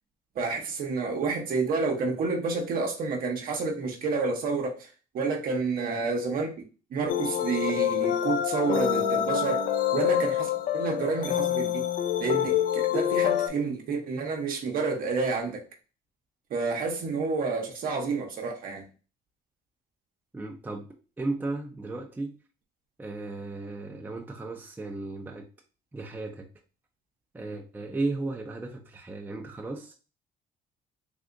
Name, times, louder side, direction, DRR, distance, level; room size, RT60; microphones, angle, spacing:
voice 1, 0.4-4.9 5.1-6.5 6.9-11.9 12.2-15.6 16.5-18.8, right 4 dB, 60° right, 0.8 m, -29 dB
sound 1, 7.1-13.5, left 10 dB, 55° left, 0.5 m, -26 dB
voice 2, 20.3-20.9 21.2-22.3 23.0-25.5 25.9-26.5 27.3-29.9, right 2 dB, 10° right, 0.5 m, -35 dB
3.5 x 2.7 x 2.5 m
cardioid pair, 110°, 17 cm